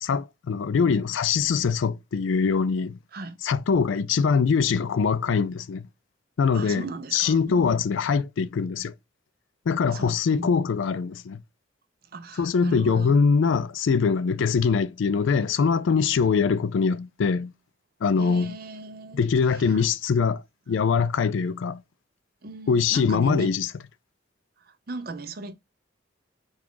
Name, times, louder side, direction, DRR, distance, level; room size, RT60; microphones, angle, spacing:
voice 1, 0.0-3.0 3.4-5.9 6.4-6.9 7.1-8.9 9.7-11.4 12.4-17.5 18.0-18.6 19.1-21.8 22.7-23.7, left 5 dB, 75° left, 0.4 m, -23 dB
voice 2, 6.5-7.8 9.9-10.7 12.1-13.1 14.4-14.6 18.2-19.3 19.5-19.8 22.4-23.5 24.7-25.5, right 2 dB, 50° right, 0.6 m, -37 dB
5.9 x 2.4 x 3.8 m
head